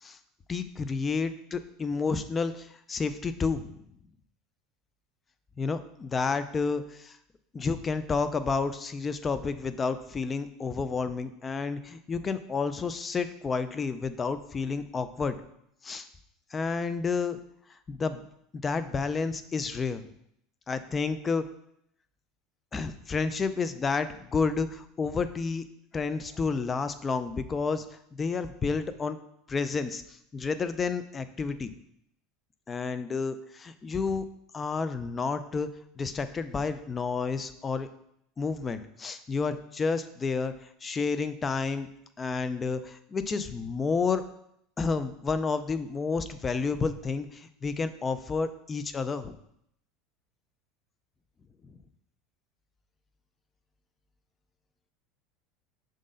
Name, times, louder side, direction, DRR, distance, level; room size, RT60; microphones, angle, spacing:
voice 1, 0.5-3.8 5.6-7.2 7.5-15.4 15.8-16.1 16.5-17.4 17.9-18.2 18.5-20.0 20.7-21.5 22.7-25.6 25.9-29.2 29.5-31.7 32.7-34.2 34.5-35.7 36.0-37.9 38.4-41.9 42.2-44.2 44.8-49.4 51.6-51.7, left 4 dB, 20° left, 11 dB, 0.4 m, -30 dB
6.4 x 4.0 x 3.8 m, 0.74 s
supercardioid pair, 130°, 0 cm